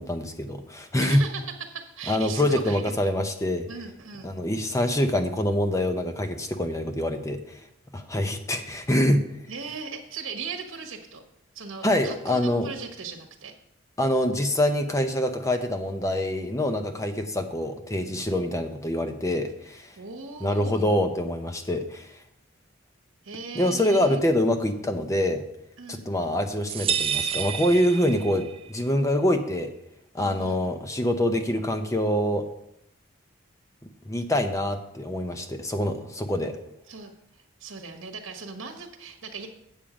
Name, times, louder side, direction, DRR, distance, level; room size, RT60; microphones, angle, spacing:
voice 1, 0.0-1.2 2.1-3.7 4.2-7.4 7.9-9.2 11.8-12.7 14.0-19.9 20.4-22.1 23.5-25.4 25.9-29.7 30.1-32.4 34.1-36.5, left 1 dB, 15° left, 7 dB, 0.7 m, -25 dB
voice 2, 1.0-3.0 3.7-4.4 9.5-11.2 11.5-13.5 20.0-21.0 23.2-24.2 25.8-26.1 30.2-30.8 36.9-39.5, right 5 dB, 75° right, 4 dB, 1.2 m, -38 dB
sound 1, 26.7-28.6, right 8 dB, 25° right, 0.4 m, -29 dB
8.8 x 7.3 x 5.0 m, 0.81 s
head